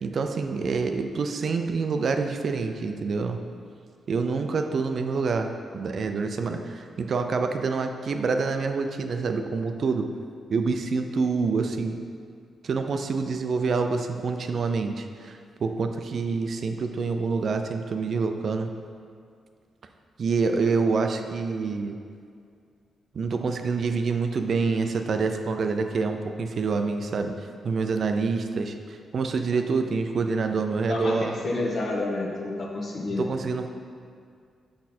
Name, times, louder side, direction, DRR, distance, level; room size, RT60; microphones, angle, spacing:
voice 1, 0.0-3.4 4.1-10.1 10.5-12.0 12.6-18.7 20.2-21.9 23.1-28.7 29.1-31.3 33.2-33.7, right 4 dB, 55° right, 6 dB, 0.4 m, -27 dB
voice 2, 30.9-33.3, left 2 dB, 55° left, -2 dB, 1.1 m, -29 dB
6.2 x 5.2 x 4.3 m, 2.2 s
cardioid pair, 125°, 0 cm